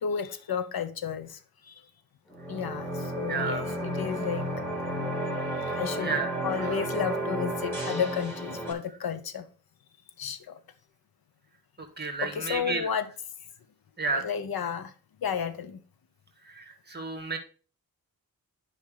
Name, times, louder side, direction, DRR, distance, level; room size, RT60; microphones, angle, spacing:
voice 1, 0.0-1.4 1.7-1.8 2.5-2.9 3.2-4.5 5.8-6.2 6.4-9.4 10.2-10.4 12.2-13.1 14.1-14.9 15.2-15.8, left 7 dB, 85° left, 0.9 m, -32 dB
sound 1, 2.3-8.7, right 1 dB, 5° left, 3.2 m, -32 dB
voice 2, 3.2-3.7 6.0-6.8 11.8-12.9 14.0-14.3 16.4-17.4, right 4 dB, 30° right, 2.0 m, -32 dB
10.5 x 5.2 x 3.9 m
wide cardioid pair, 85°, 36 cm